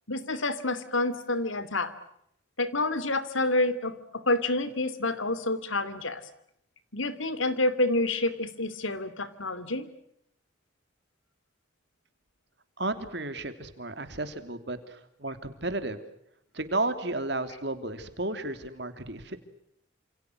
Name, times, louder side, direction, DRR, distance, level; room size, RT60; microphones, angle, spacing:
voice 1, 0.1-1.9 2.6-6.2 6.9-9.9, left 2 dB, 80° left, 14 dB, 2.8 m, -28 dB
voice 2, 12.8-16.0 16.5-19.4, right 2 dB, 55° right, 9 dB, 3.1 m, -33 dB
29.5 x 27.5 x 6.4 m, 0.73 s
head